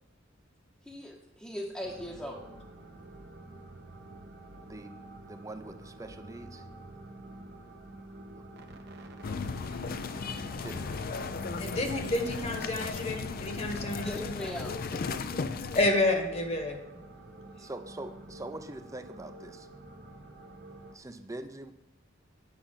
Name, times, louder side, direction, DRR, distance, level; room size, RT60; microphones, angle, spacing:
voice 1, 0.8-2.4 13.9-14.8 15.1-15.2, equal, 5° left, -4 dB, 0.9 m, -39 dB
sound 1, 1.8-21.0, right 1 dB, 55° right, 0.9 m, -48 dB
voice 2, 5.2-6.6 10.6-11.0 14.9-15.3 17.6-19.7 20.9-21.7, right 2 dB, 15° right, 8 dB, 0.5 m, -43 dB
sound 2, 9.2-15.9, left 5 dB, 50° left, 0.4 m, -36 dB
voice 3, 11.6-14.3 15.7-16.8, left 2 dB, 30° left, 4 dB, 1.2 m, -29 dB
8.8 x 5.8 x 5.7 m, 0.92 s
head